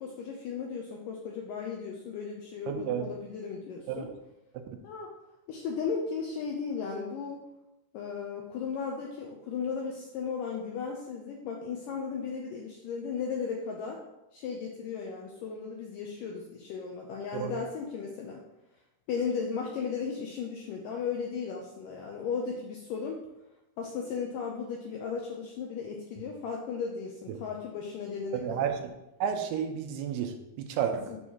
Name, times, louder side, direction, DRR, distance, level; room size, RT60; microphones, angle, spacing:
voice 1, 0.0-4.1 4.8-5.1 5.5-7.4 7.9-14.0 14.3-18.4 19.1-23.2 23.8-28.7 30.9-31.2, left 6 dB, 85° left, 0 dB, 1.9 m, -35 dB
voice 2, 2.7-3.1 3.9-4.1 17.3-17.5 28.3-28.9 29.2-31.0, right 8 dB, 85° right, 6 dB, 2.7 m, -31 dB
7.1 x 6.4 x 2.9 m, 0.94 s
omnidirectional pair, 4.6 m